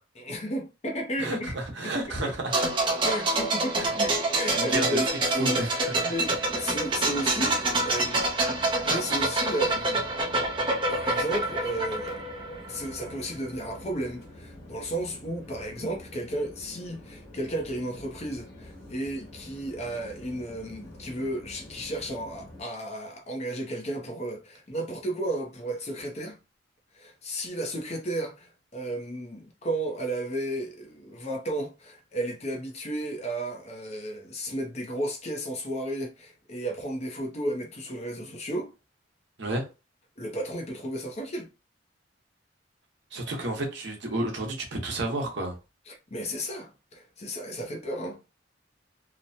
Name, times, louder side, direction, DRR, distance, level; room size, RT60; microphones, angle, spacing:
voice 1, 0.1-1.5 1.8-2.3 3.0-8.3 8.8-10.1 10.9-12.1 12.7-26.4 26.9-38.7 40.2-41.5 45.9-48.2, right 1 dB, 35° left, 0.7 m, -33 dB
voice 2, 1.2-2.5 3.8-3.9 4.6-5.0 5.4-5.7 39.4-39.7 43.1-45.5, right 1 dB, 65° right, 0.9 m, -31 dB
sound 1, 2.5-13.1 13.4-13.6, right 2 dB, 25° right, 0.6 m, -27 dB
sound 2, 6.1-22.6, left 1 dB, 55° left, 1.5 m, -47 dB
2.9 x 2.1 x 2.6 m
head